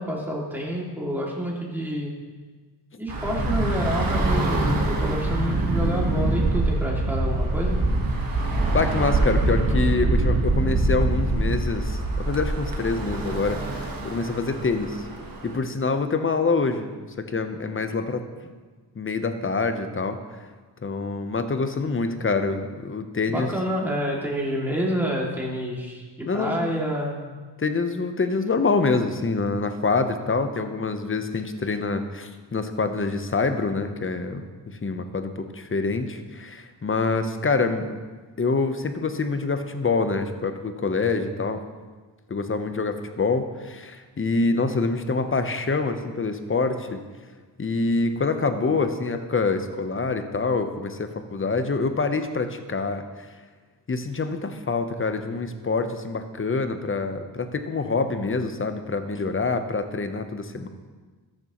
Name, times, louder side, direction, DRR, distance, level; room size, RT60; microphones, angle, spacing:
voice 1, 0.0-2.1 3.0-7.8 23.3-27.2, equal, 5° right, -3 dB, 2.5 m, -28 dB
Bus / Traffic noise roadway noise, 3.1-15.6, right 2 dB, 45° right, 1.5 m, -24 dB
voice 2, 8.7-15.0 15.4-18.5 19.0-20.2 20.8-23.5 26.3-26.5 27.6-37.9 38.4-41.6 42.3-47.0 47.6-53.0 53.9-60.7, left 4 dB, 25° left, 8 dB, 0.8 m, -26 dB
13.5 x 6.7 x 3.1 m, 1.4 s
cardioid pair, 70°, 48 cm